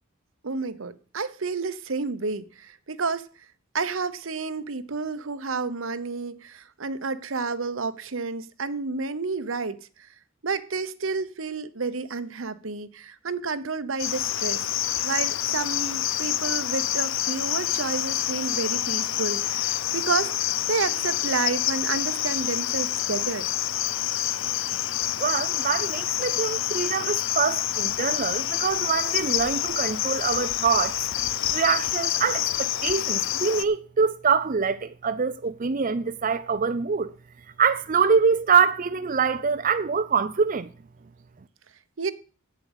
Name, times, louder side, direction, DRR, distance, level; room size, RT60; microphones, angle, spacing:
voice 1, 0.4-3.2 3.7-9.8 10.4-14.7 15.0-23.5 42.0-42.1, right 4 dB, 75° right, 0.9 m, -30 dB
Cricket, 14.0-33.6, left 12 dB, 70° left, 0.5 m, -27 dB
voice 2, 25.2-31.0 31.5-37.1 37.6-40.7, right 6 dB, 40° right, 0.5 m, -24 dB
8.3 x 7.6 x 8.0 m
head